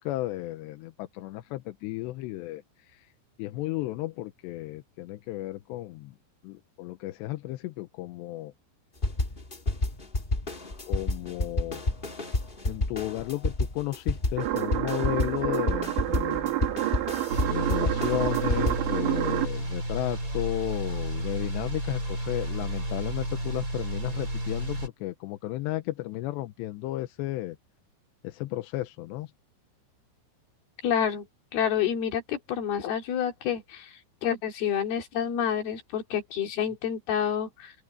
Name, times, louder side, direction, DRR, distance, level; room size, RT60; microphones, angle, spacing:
voice 1, 0.0-3.1 3.4-6.2 6.4-8.5 10.9-11.9 12.6-17.0 17.4-27.6 28.2-29.3, left 16 dB, 80° left, 2.9 m, -33 dB
sound 1, 9.0-18.9, left 2 dB, 40° left, 0.7 m, -30 dB
sound 2, 14.4-19.5, right 15 dB, 80° right, 4.2 m, -29 dB
sound 3, 17.3-24.9, right 1 dB, 20° right, 5.3 m, -32 dB
voice 2, 30.8-31.3 31.5-33.9 34.2-37.7, left 8 dB, 60° left, 4.3 m, -28 dB
open air
omnidirectional pair, 5.3 m